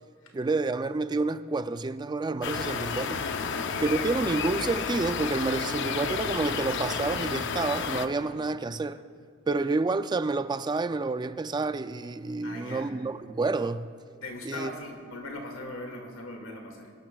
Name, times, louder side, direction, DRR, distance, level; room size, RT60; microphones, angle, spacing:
voice 1, 0.3-3.2 3.8-9.0 9.5-13.9 14.4-14.7, right 3 dB, 20° right, 0.3 m, -29 dB
sound 1, 2.4-8.1, left 5 dB, 60° left, 0.6 m, -31 dB
voice 2, 3.3-3.7 8.2-8.3 12.4-12.9 14.2-16.9, left 2 dB, 90° left, 2.0 m, -40 dB
25.0 x 12.0 x 2.3 m
head